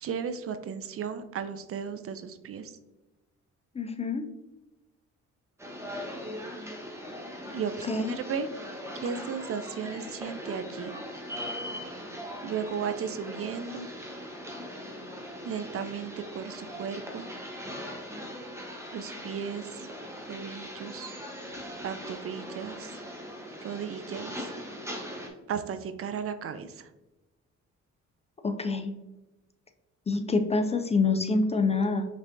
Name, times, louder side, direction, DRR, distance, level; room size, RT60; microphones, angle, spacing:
voice 1, 0.0-2.7 7.5-8.5 9.0-10.9 12.4-13.9 15.4-17.3 18.9-19.9 20.3-21.2 21.8-23.0 23.6-24.5 25.5-26.9, right 7 dB, 50° right, 10 dB, 0.4 m, -35 dB
voice 2, 3.7-4.3 7.8-8.2 28.4-28.9 30.1-32.1, left 3 dB, 20° left, 7 dB, 0.4 m, -26 dB
sound 1, 5.6-25.3, equal, 10° right, 0.9 m, -40 dB
5.2 x 3.3 x 2.6 m, 1.0 s
cardioid pair, 90°, 30 cm